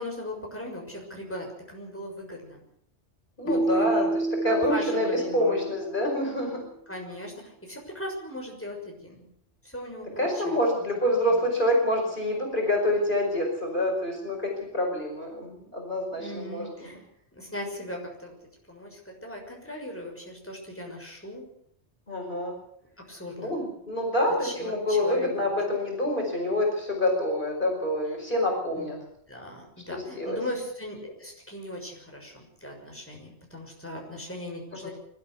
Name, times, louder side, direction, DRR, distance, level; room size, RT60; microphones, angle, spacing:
voice 1, 0.0-2.6 3.4-4.2 4.4-5.6 6.9-9.3 9.6-10.6 16.2-17.0 17.3-18.3 18.7-21.5 23.1-23.5 24.4-25.5 28.7-28.9 29.3-34.9, left 1 dB, 10° left, 0 dB, 6.5 m, -38 dB
voice 2, 3.4-6.6 10.2-16.9 22.1-22.5 23.4-29.0 29.9-30.4 34.7-34.9, left 1 dB, 45° left, 0 dB, 5.5 m, -27 dB
Keyboard (musical), 3.5-6.3, right 2 dB, 80° left, 1.6 m, -29 dB
25.0 x 13.5 x 8.3 m, 0.70 s
omnidirectional pair, 1.2 m